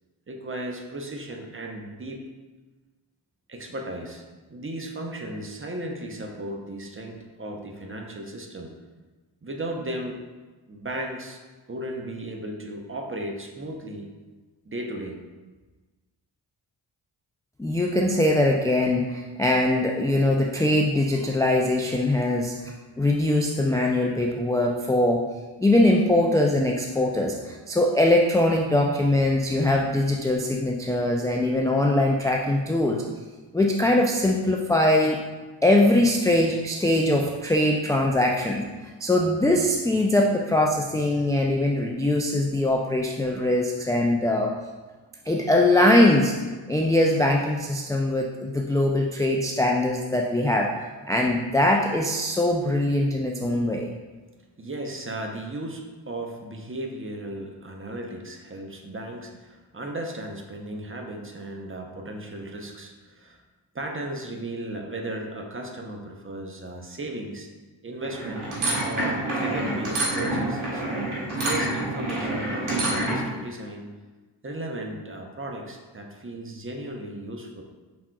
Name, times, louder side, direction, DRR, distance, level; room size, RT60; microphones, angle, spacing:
voice 1, 0.3-2.3 3.5-4.2 4.5-8.7 9.4-10.2 10.7-11.4 11.7-14.1 14.6-15.2 54.6-63.4 63.7-67.5 67.8-68.5 68.8-70.8 71.4-73.9 74.4-77.6, right 1 dB, 25° right, 2 dB, 0.7 m, -35 dB
voice 2, 17.6-22.6 23.0-25.2 25.6-33.0 33.5-35.2 35.6-38.7 39.0-44.6 45.3-46.4 46.7-50.7 51.1-53.9, left 1 dB, 10° left, 0 dB, 0.3 m, -22 dB
sound 1, 68.0-73.3, right 1 dB, 90° right, 1.5 m, -27 dB
6.0 x 3.5 x 2.3 m, 1.3 s
cardioid pair, 45°, 47 cm